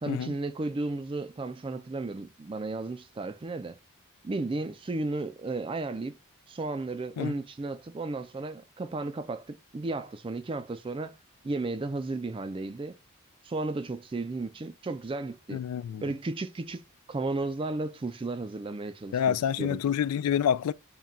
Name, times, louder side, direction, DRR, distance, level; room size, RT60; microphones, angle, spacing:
voice 1, 0.0-3.8 4.2-6.2 6.5-11.2 11.4-13.0 13.4-15.6 16.0-19.8, right 2 dB, 25° right, 0.3 m, -34 dB
voice 2, 15.5-16.0 19.1-20.7, left 8 dB, 90° left, 0.3 m, -27 dB
3.7 x 2.3 x 4.1 m
head